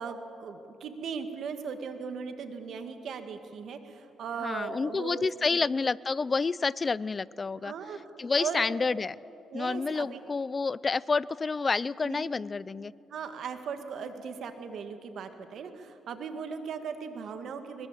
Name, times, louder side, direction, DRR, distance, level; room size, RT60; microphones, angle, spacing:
voice 1, 0.0-5.6 7.6-8.0 8.4-8.7 9.5-10.2 12.0-12.3 13.1-17.9, right 6 dB, 65° right, 7 dB, 1.9 m, -38 dB
voice 2, 4.4-7.7 8.2-9.2 9.5-12.9, left 4 dB, 30° left, 20 dB, 0.4 m, -29 dB
21.5 x 21.0 x 7.5 m, 2.8 s
cardioid pair, 90°, 0 cm